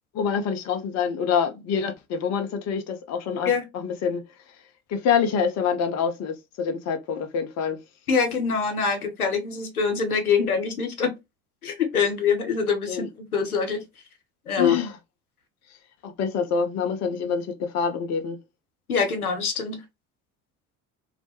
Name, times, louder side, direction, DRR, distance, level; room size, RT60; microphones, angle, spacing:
voice 1, 0.1-4.2 4.9-7.8 12.9-13.1 14.6-14.9 16.0-18.4, left 6 dB, 40° left, 0.6 m, -26 dB
voice 2, 8.1-11.1 11.6-13.1 13.3-13.8 14.5-14.8 18.9-19.8, left 6 dB, 90° left, 0.6 m, -24 dB
2.3 x 2.1 x 2.7 m
figure-of-eight pair, 55°, 43 cm